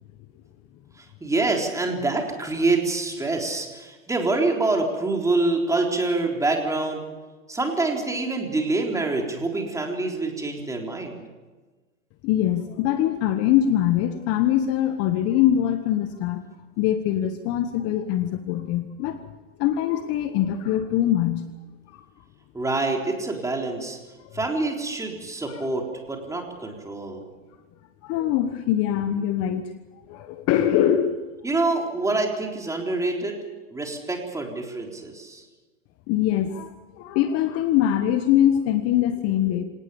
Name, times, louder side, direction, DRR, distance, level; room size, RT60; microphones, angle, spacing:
voice 1, 1.0-7.1 7.5-11.2 22.5-24.0 24.3-27.2 31.4-33.4 33.7-35.4, right 2 dB, 5° right, 2 dB, 3.8 m, -26 dB
voice 2, 12.2-16.4 16.8-19.2 19.6-21.5 21.9-22.1 24.2-24.3 25.5-25.6 28.0-29.7 30.1-31.2 36.1-39.6, left 11 dB, 35° left, 10 dB, 1.2 m, -23 dB
26.5 x 18.0 x 7.1 m, 1.3 s
hypercardioid pair, 125°, 42 cm